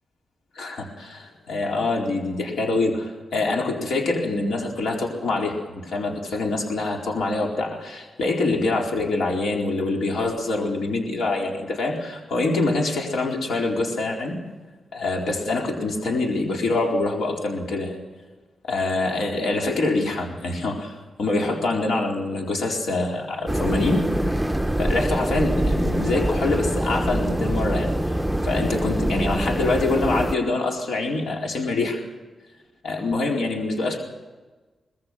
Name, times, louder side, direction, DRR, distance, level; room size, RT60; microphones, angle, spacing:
voice 1, 0.5-14.4 14.9-18.0 18.6-24.0 24.8-28.1 28.4-32.0 32.8-34.0, left 2 dB, 80° left, 0 dB, 4.3 m, -25 dB
sound 1, 23.5-30.4, right 1 dB, ahead, 0.6 m, -24 dB
24.5 x 20.0 x 6.2 m, 1.2 s
wide cardioid pair, 165°, 0 cm